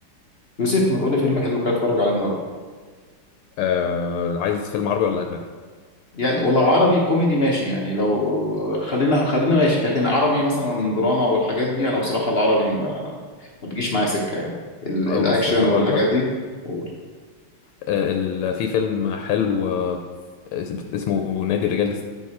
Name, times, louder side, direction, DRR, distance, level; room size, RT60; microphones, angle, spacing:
voice 1, 0.6-2.3 6.1-13.1 13.6-14.5 14.8-16.2 16.6-16.8, left 1 dB, 55° left, -3 dB, 0.7 m, -21 dB
voice 2, 3.6-5.4 15.1-16.0 17.9-20.0 20.5-22.0, left 7 dB, 85° left, 4 dB, 1.5 m, -24 dB
8.6 x 4.7 x 4.2 m, 1.5 s
omnidirectional pair, 2.4 m